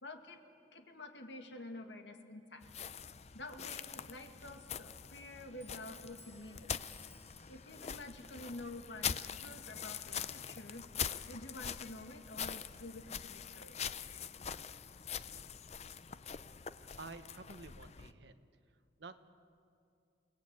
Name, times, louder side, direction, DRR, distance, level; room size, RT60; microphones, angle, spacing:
voice 1, 0.0-0.4 0.7-2.7 3.3-6.8 7.5-10.9 11.3-13.8, left 2 dB, 70° left, 5 dB, 2.2 m, -49 dB
sound 1, 2.6-18.1, left 8 dB, 35° left, 0.6 m, -44 dB
Clock, 4.4-13.1, left 2 dB, 10° left, 2.0 m, -67 dB
voice 2, 17.0-18.4 19.0-19.2, right 3 dB, 65° right, 9 dB, 1.3 m, -50 dB
29.5 x 18.0 x 9.1 m, 2.4 s
head